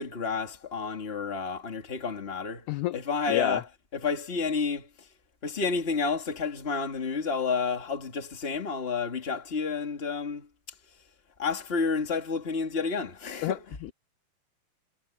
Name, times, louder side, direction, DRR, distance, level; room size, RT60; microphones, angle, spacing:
voice 1, 0.0-2.7 2.9-3.7 3.9-5.1 5.4-10.5 11.4-13.6, left 5 dB, 20° left, 1.8 m, -30 dB
voice 2, 2.7-3.0 3.3-3.6 13.4-13.9, left 16 dB, 85° left, 1.8 m, -29 dB
omnidirectional pair, 4.1 m